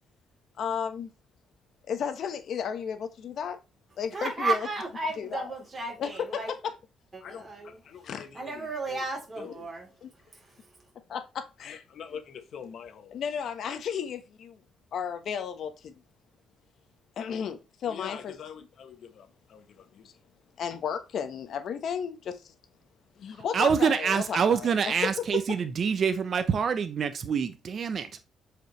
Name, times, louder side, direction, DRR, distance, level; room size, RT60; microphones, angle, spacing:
voice 1, 0.6-1.1 1.9-3.6 4.0-4.7 5.2-5.5 6.0-6.7 7.2-9.0 9.4-9.6 10.0-10.1 11.1-14.6 14.9-15.9 17.2-20.1 20.6-22.5 23.2-25.1 25.5-25.6, left 7 dB, 65° left, 1.2 m, -35 dB
voice 2, 4.1-6.5 7.1-7.8 8.3-9.9 10.3-10.5, right 3 dB, 25° right, 3.7 m, -33 dB
voice 3, 23.5-28.2, right 6 dB, 50° right, 0.8 m, -26 dB
7.8 x 5.0 x 3.3 m
cardioid pair, 90°, 0 cm